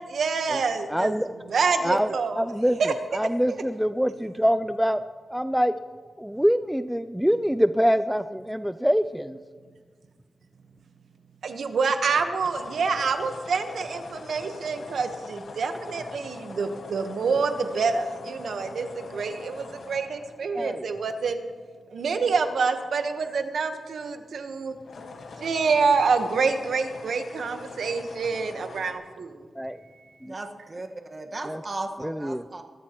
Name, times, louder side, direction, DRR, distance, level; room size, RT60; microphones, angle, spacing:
voice 1, 0.1-1.1 1.5-2.4 2.8-2.9 11.4-21.4 21.9-24.7 25.4-29.5, right 4 dB, 75° right, 7 dB, 1.1 m, -27 dB
voice 2, 0.9-1.3 1.8-2.1 2.4-2.8 3.1-5.0 5.3-5.7 6.2-9.4 20.5-20.9 29.6-29.8 30.2-30.3 31.5-31.6 32.0-32.4, equal, ahead, 11 dB, 0.3 m, -24 dB
sound 1, 12.0-21.3 24.8-28.9, left 3 dB, 75° left, 1.5 m, -43 dB
voice 3, 30.2-32.6, right 2 dB, 35° right, 3 dB, 1.5 m, -36 dB
22.5 x 13.0 x 3.0 m, 1.5 s
wide cardioid pair, 105°, 0 cm